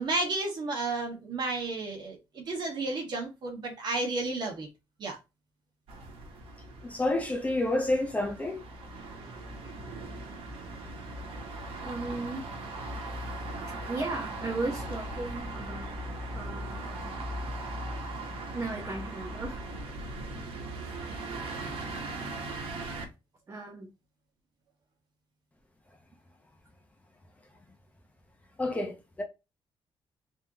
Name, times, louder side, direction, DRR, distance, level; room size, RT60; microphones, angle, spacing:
voice 1, 0.0-4.7 5.0-5.2, right 2 dB, 50° right, 1.5 m, -32 dB
sound 1, 5.9-23.0, right 2 dB, 90° right, 1.0 m, -39 dB
voice 2, 6.8-8.6 28.6-29.2, left 2 dB, 15° left, 0.8 m, -29 dB
voice 3, 11.8-12.4 13.9-16.0 16.3-17.2 18.5-19.6 23.5-23.9, right 3 dB, 30° right, 1.0 m, -36 dB
3.6 x 3.4 x 2.8 m
cardioid pair, 145°, 9 cm